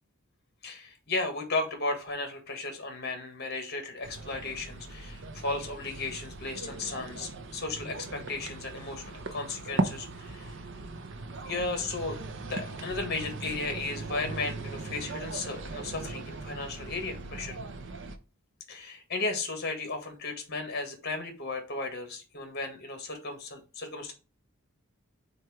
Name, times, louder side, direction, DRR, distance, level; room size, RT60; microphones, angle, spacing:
voice 1, 0.6-10.5 11.4-17.6 18.7-24.1, left 3 dB, 50° left, 5 dB, 1.5 m, -35 dB
sound 1, 4.0-18.2, right 3 dB, 60° right, 0.8 m, -38 dB
7.6 x 2.6 x 4.8 m, 0.33 s
head